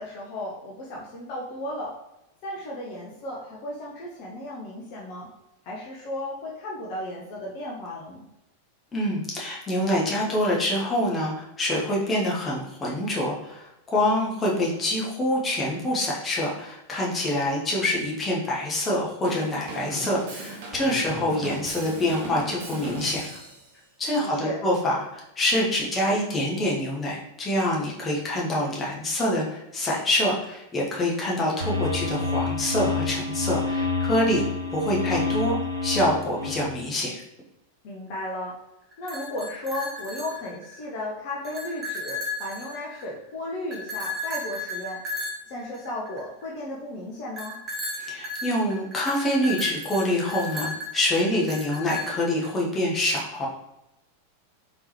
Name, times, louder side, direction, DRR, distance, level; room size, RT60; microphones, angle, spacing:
voice 1, 0.0-2.0 2.4-5.3 5.6-8.3 24.2-24.6 37.8-38.5 39.0-45.0 45.5-47.6, left 1 dB, 45° left, -4 dB, 0.7 m, -35 dB
voice 2, 8.9-23.4 24.0-34.4 34.7-35.6 35.8-37.2 48.0-53.5, left 1 dB, 20° left, -4 dB, 0.9 m, -26 dB
Drum kit / Drum, 19.2-23.6, right 2 dB, 50° right, 0.9 m, -36 dB
sound 1, 31.6-36.7, left 3 dB, 80° right, 0.4 m, -28 dB
sound 2, 38.9-40.9 41.3-43.2 43.7-46.4 47.4-52.5, left 2 dB, 20° right, 1.0 m, -34 dB
3.5 x 2.9 x 3.1 m, 0.87 s
figure-of-eight pair, 90°, 0 cm